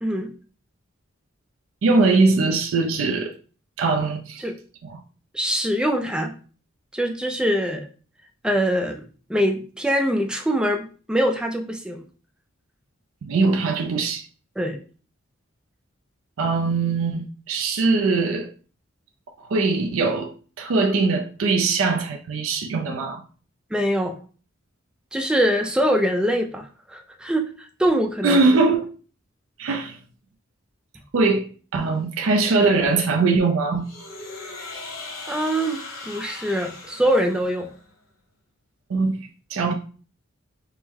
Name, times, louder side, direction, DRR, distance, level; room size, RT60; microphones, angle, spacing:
voice 1, 0.0-0.3 4.4-4.5 5.3-6.3 6.9-7.9 8.4-12.0 14.6-14.8 23.7-24.1 25.1-28.4 35.3-37.7, equal, 5° right, 0.4 m, -23 dB
voice 2, 1.8-3.3 3.8-4.4 4.8-5.0 13.2-14.2 16.4-18.5 19.4-20.3 20.6-23.2 28.2-28.9 29.6-30.0 31.1-31.4 31.7-33.9 38.9-39.2 39.5-39.7, right 3 dB, 75° right, 0.4 m, -21 dB
sound 1, 33.8-37.9, left 3 dB, 75° left, 0.9 m, -38 dB
4.5 x 2.1 x 3.5 m
head